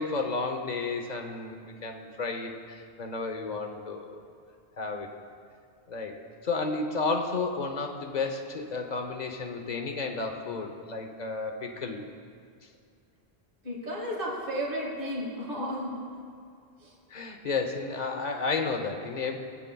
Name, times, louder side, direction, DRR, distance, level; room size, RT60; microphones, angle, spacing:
voice 1, 0.0-4.2 4.8-5.2 5.9-12.0 17.1-19.4, left 4 dB, 45° left, 4 dB, 0.9 m, -32 dB
voice 2, 13.6-16.1 16.8-16.9, equal, 60° right, -3 dB, 1.9 m, -33 dB
25.0 x 8.4 x 2.3 m, 2.3 s
omnidirectional pair, 1.0 m